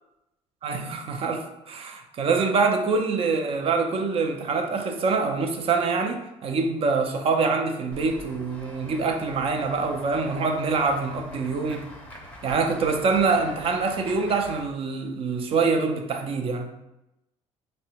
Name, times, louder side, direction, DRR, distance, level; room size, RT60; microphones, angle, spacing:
voice 1, 0.6-11.9 12.4-16.7, right 4 dB, 45° right, 4 dB, 0.4 m, -25 dB
Run / Walk footsteps / Bell, 7.9-14.6, left 1 dB, 10° left, 0.7 m, -44 dB
3.4 x 2.1 x 2.9 m, 0.91 s
cardioid pair, 115°, 13 cm